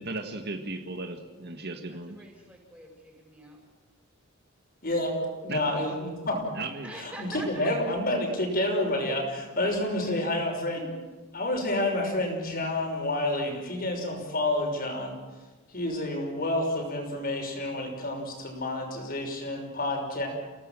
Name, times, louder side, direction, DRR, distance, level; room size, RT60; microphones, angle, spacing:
voice 1, 0.0-2.2 5.5-5.6 6.5-6.9, right 2 dB, 50° right, 6 dB, 1.7 m, -36 dB
voice 2, 1.9-3.6 6.8-7.9 9.6-10.1 10.7-11.0, right 1 dB, 5° right, -1 dB, 7.5 m, -45 dB
voice 3, 4.8-6.4 6.9-10.9 11.3-20.3, left 1 dB, 45° left, 2 dB, 6.1 m, -29 dB
30.0 x 18.0 x 7.6 m, 1.2 s
head